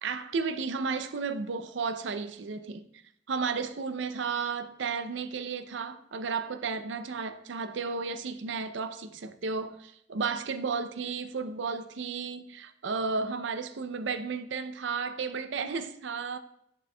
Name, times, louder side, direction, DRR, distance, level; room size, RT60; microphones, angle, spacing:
voice 1, 0.0-2.9 3.3-16.4, right 5 dB, 70° right, 0.5 m, -33 dB
11.0 x 4.5 x 2.2 m
head